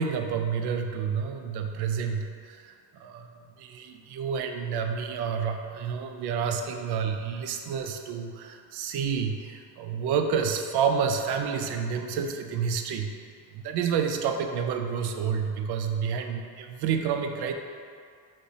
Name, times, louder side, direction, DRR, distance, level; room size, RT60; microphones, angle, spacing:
voice 1, 0.0-3.3 3.6-13.1 13.5-17.5, right 6 dB, 65° right, 5 dB, 0.5 m, -29 dB
5.1 x 2.8 x 3.2 m, 2.2 s
cardioid pair, 105°, 42 cm